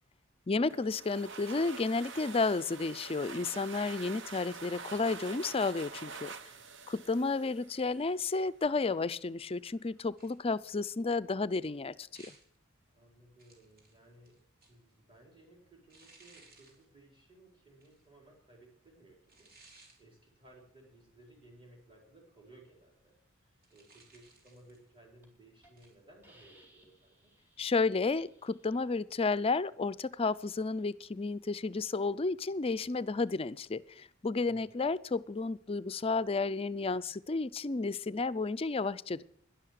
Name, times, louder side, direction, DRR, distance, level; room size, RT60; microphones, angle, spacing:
voice 1, 0.5-6.3 6.9-12.1 27.6-39.2, left 3 dB, 30° left, 0.5 m, -32 dB
sound 1, 0.7-8.2, right 5 dB, 65° right, 1.1 m, -46 dB
voice 2, 6.3-6.6 12.9-14.4 14.7-23.1 23.4-27.3 34.5-34.8, right 1 dB, 25° right, 4.4 m, -60 dB
sound 2, 10.2-10.7 12.1-12.6 13.4-14.9 15.9-16.8 17.8-18.0 19.3-20.0 23.6-24.9 25.8-26.0, right 3 dB, 50° right, 3.7 m, -60 dB
Hiss, 24.6-24.8 25.2-25.3 25.6-25.9 26.2-28.8, right 1 dB, 10° right, 3.9 m, -64 dB
12.0 x 11.0 x 6.5 m
head